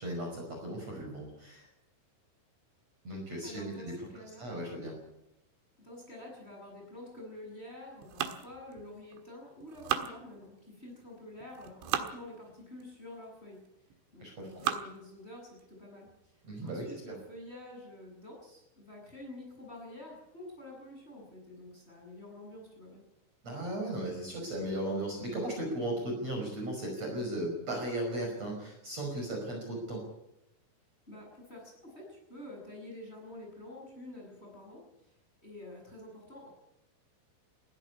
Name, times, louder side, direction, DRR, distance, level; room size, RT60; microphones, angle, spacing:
voice 1, 0.0-1.6 3.0-3.9 4.4-4.9 14.2-14.6 16.4-16.9 23.4-30.0, right 1 dB, 35° right, 1 dB, 6.3 m, -36 dB
voice 2, 3.4-4.5 5.8-13.6 14.1-23.0 31.1-35.1 35.4-36.5, left 1 dB, 10° left, 0 dB, 7.9 m, -48 dB
sound 1, 8.0-9.2 9.6-10.7 11.4-12.2 12.8-12.9 13.7-14.0 14.4-15.0 15.6-15.7 16.1-16.2 16.6-16.9, right 9 dB, 90° right, 4.0 m, -36 dB
20.0 x 15.5 x 9.8 m, 0.86 s
omnidirectional pair, 5.3 m